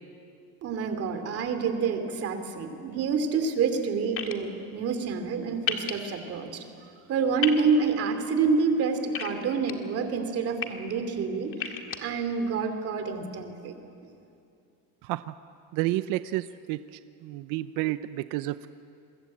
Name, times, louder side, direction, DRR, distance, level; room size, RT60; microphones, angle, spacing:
voice 1, 0.6-6.6 7.1-13.8, right 5 dB, 40° right, 7 dB, 2.7 m, -28 dB
sound 1, 4.2-4.3 5.7-5.9 7.4-7.6 9.1-9.7 10.4-10.7 11.5-12.0, left 8 dB, 35° left, 1.9 m, -30 dB
voice 2, 15.0-15.3 15.7-16.8 17.2-18.7, right 16 dB, 60° right, 12 dB, 0.7 m, -30 dB
28.0 x 23.0 x 8.6 m, 2.6 s
cardioid pair, 165°, 36 cm